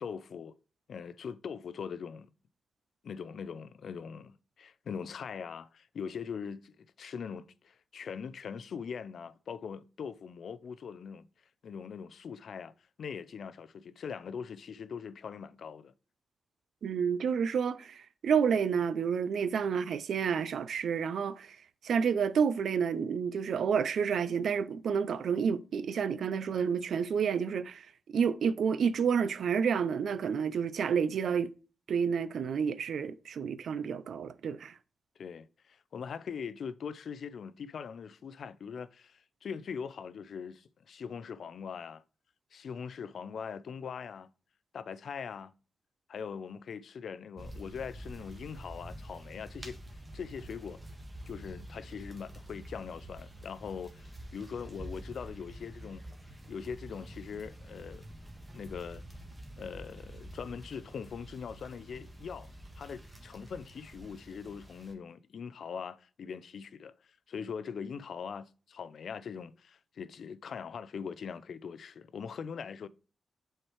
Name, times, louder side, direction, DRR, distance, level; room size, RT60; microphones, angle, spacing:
voice 1, 0.0-0.6 0.9-2.3 3.0-11.3 11.6-12.7 13.0-15.9 35.2-42.0 42.5-44.3 44.7-45.5 46.1-49.8 50.1-50.8 51.3-56.0 56.5-58.0 58.5-59.0 59.6-62.5 62.8-72.9, left 6 dB, 75° left, 0.4 m, -41 dB
voice 2, 16.8-21.6 21.8-27.9 28.1-31.5 31.9-34.7, right 6 dB, 85° right, 0.4 m, -29 dB
sound 1, 47.4-64.9, right 1 dB, 20° right, 1.4 m, -48 dB
7.6 x 4.5 x 3.1 m
wide cardioid pair, 100°, 0 cm